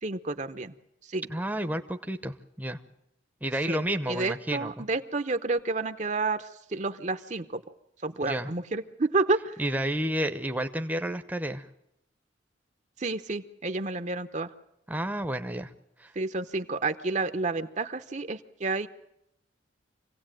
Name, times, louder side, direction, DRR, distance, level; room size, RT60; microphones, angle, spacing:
voice 1, 0.0-0.7 1.0-1.3 3.7-7.6 8.0-9.6 13.0-14.5 16.1-18.9, right 3 dB, 40° right, 10 dB, 0.8 m, -30 dB
voice 2, 1.3-2.8 3.4-4.7 8.2-8.5 9.6-11.7 14.9-15.7 16.0-16.1, right 1 dB, 10° right, 7 dB, 0.8 m, -31 dB
26.0 x 17.0 x 9.1 m, 0.83 s
head